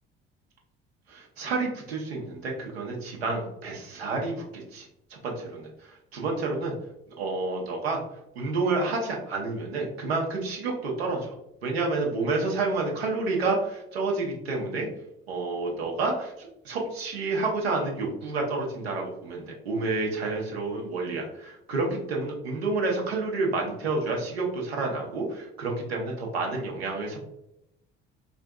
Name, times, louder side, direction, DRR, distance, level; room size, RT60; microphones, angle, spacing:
voice 1, 1.1-6.7 7.2-8.0 8.4-11.3 11.6-14.9 15.3-27.2, right 3 dB, 75° right, 0 dB, 0.8 m, -29 dB
4.2 x 2.5 x 2.2 m, 0.82 s
figure-of-eight pair, 50°, 31 cm